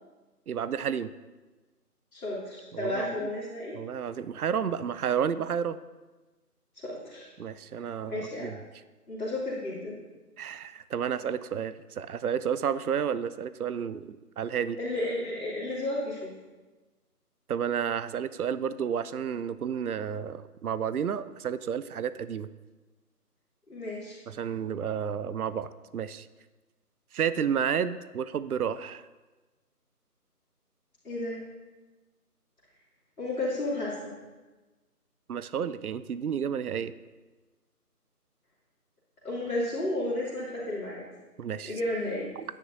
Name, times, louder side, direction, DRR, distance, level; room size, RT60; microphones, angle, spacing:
voice 1, 0.5-1.1 2.7-3.3 3.8-5.8 7.4-8.5 10.4-14.8 17.5-22.5 24.3-26.3 27.1-29.0 35.3-36.9 41.4-41.8 42.4-42.5, right 8 dB, 65° right, 14 dB, 0.5 m, -31 dB
voice 2, 2.1-3.8 6.8-7.3 7.8-8.5 9.1-9.9 14.8-16.3 23.7-24.2 31.0-31.4 33.2-34.1 39.2-41.0 41.7-42.3, left 1 dB, 65° left, -8 dB, 2.8 m, -32 dB
12.0 x 9.8 x 2.7 m, 1.2 s
figure-of-eight pair, 170°, 47 cm